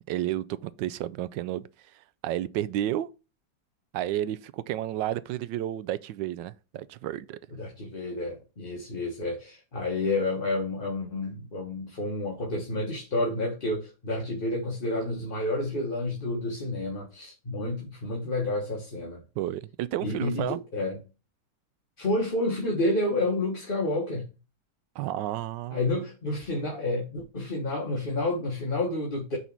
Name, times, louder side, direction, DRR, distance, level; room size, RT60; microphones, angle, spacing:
voice 1, 0.1-1.7 2.2-3.1 3.9-7.4 19.4-20.6 25.0-26.0, right 13 dB, 75° right, 1.2 m, -31 dB
voice 2, 7.6-19.2 20.0-21.0 22.0-24.3 25.7-29.4, left 2 dB, 30° left, 1.4 m, -30 dB
7.0 x 4.1 x 6.0 m
omnidirectional pair, 2.0 m